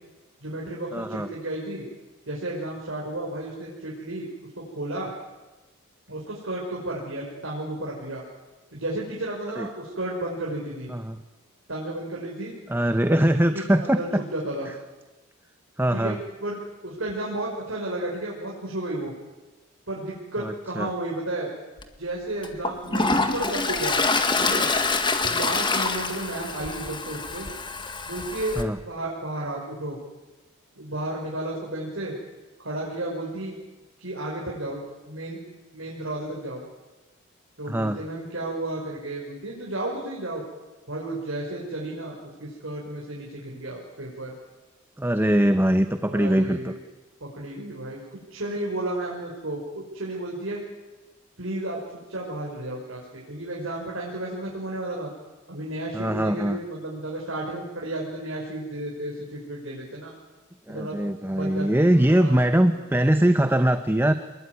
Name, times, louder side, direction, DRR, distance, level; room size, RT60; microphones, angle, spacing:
voice 1, 0.4-1.8 2.3-4.3 4.5-5.1 6.1-8.2 8.7-10.9 11.7-12.5 13.5-14.7 15.9-16.6 16.8-19.1 19.9-21.5 22.0-24.0 24.4-24.7 25.2-27.5 28.1-28.6 28.8-30.0 30.8-32.1 32.6-33.6 34.0-35.4 35.7-36.6 37.6-40.4 40.9-44.3 46.1-46.8 47.2-48.0 48.3-50.6 51.4-51.8 52.1-55.1 55.5-60.1 60.7-61.0 61.3-62.4, right 1 dB, 65° right, -3 dB, 5.9 m, -32 dB
voice 2, 0.9-1.3 9.6-9.7 10.9-11.2 12.7-14.2 14.7-14.8 15.8-16.2 20.4-20.9 28.6-28.8 37.7-38.0 45.0-46.7 55.9-56.6 60.7-64.1, right 1 dB, 10° right, 9 dB, 0.9 m, -22 dB
Toilet flush, 21.8-21.9 22.4-28.6, left 3 dB, 25° left, 1.8 m, -26 dB
27.5 x 21.0 x 9.7 m, 1.1 s
head